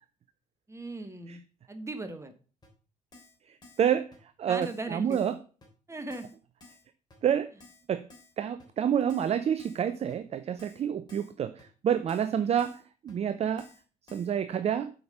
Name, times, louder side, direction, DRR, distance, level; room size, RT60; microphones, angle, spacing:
voice 1, 0.7-1.4 1.7-2.3 4.5-5.3 5.9-6.3, right 2 dB, 15° right, 8 dB, 1.3 m, -38 dB
Keyboard (musical), 2.6-2.7 3.1-3.4 3.6-3.9 4.1-4.2 4.6-4.8 5.1-5.3 5.6-5.7 6.1-6.3 6.6-6.8 7.1-7.2 7.6-7.8 8.1-8.3 8.6-8.7 9.1-9.3 9.6-9.8 10.1-10.2 10.6-10.8 11.1-11.3 11.6-11.7 12.1-12.3 12.6-12.8 13.1-13.2 13.6-13.8 14.1-14.3, left 2 dB, 20° left, 3.2 m, -54 dB
voice 2, 3.8-4.1 4.4-5.3 7.2-7.5 7.9-8.0 8.4-12.8 13.0-13.7 14.1-14.9, right 9 dB, 35° right, 12 dB, 0.5 m, -28 dB
7.8 x 5.1 x 5.3 m, 0.38 s
figure-of-eight pair, 50°, 20 cm